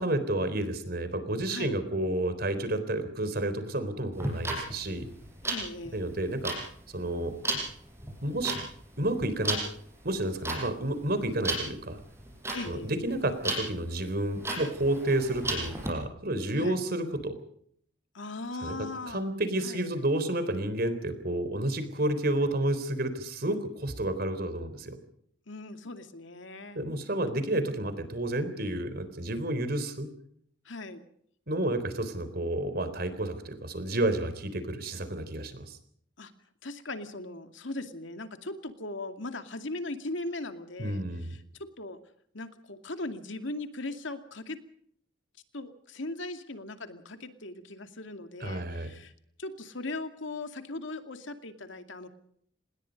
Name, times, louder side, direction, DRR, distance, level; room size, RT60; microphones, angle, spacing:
voice 1, 0.0-5.1 5.9-6.5 6.9-7.3 8.2-8.6 9.0-9.6 10.0-12.0 12.7-17.4 18.6-25.0 26.8-30.1 31.5-35.8 40.8-41.3 48.4-48.9, right 1 dB, 50° right, 11 dB, 3.9 m, -30 dB
voice 2, 1.4-1.8 5.4-6.0 12.5-12.9 16.6-16.9 18.1-19.2 19.6-19.9 25.5-26.8 30.6-31.0 36.2-36.3 36.6-41.4 41.8-42.0 42.3-44.6 45.5-49.1 49.4-52.1, left 2 dB, 70° left, 7 dB, 2.4 m, -39 dB
sound 1, 4.1-15.9, right 2 dB, 15° right, 7.2 m, -34 dB
27.0 x 20.5 x 5.3 m, 0.66 s
head